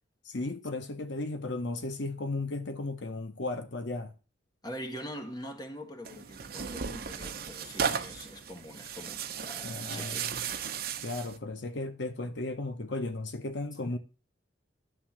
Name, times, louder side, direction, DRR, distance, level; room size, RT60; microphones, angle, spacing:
voice 1, 0.2-4.2 9.6-10.4 11.0-14.0, left 2 dB, 75° left, 0.9 m, -35 dB
voice 2, 4.6-10.3, equal, 20° left, 1.5 m, -43 dB
Tearing, 6.0-11.4, right 7 dB, 55° right, 0.8 m, -36 dB
11.0 x 3.7 x 7.3 m
head